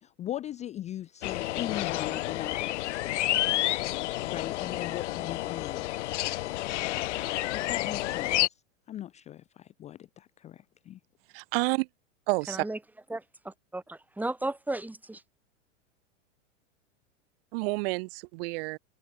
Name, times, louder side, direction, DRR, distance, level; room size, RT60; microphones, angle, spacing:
voice 1, 0.0-3.0 4.2-6.1 7.5-8.6 8.9-11.0, left 12 dB, 20° left, 0.6 m, -39 dB
sound 1, 1.2-8.5, left 17 dB, 70° left, 1.2 m, -30 dB
voice 2, 11.3-11.9 12.3-12.7 17.5-18.8, right 27 dB, 50° right, 1.3 m, -29 dB
voice 3, 12.5-12.8 13.1-15.2, right 2 dB, 5° right, 3.0 m, -35 dB
supercardioid pair, 140°, 37 cm